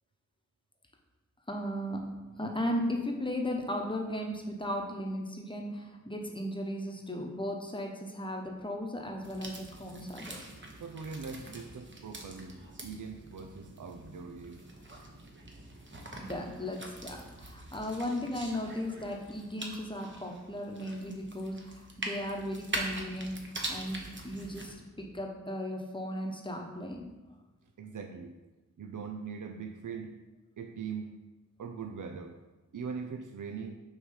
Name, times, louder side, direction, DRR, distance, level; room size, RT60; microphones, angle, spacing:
voice 1, 1.5-2.0 2.4-10.4 16.2-23.4 23.7-27.1, left 1 dB, 15° left, 2 dB, 1.0 m, -36 dB
sound 1, 9.2-24.7, right 1 dB, 35° right, 1.1 m, -43 dB
voice 2, 10.8-14.6 27.8-28.3 28.8-30.1 30.6-31.1 31.6-32.3 32.7-33.8, right 5 dB, 75° right, 4 dB, 0.6 m, -41 dB
6.3 x 3.2 x 5.6 m, 1.1 s
wide cardioid pair, 65°, 31 cm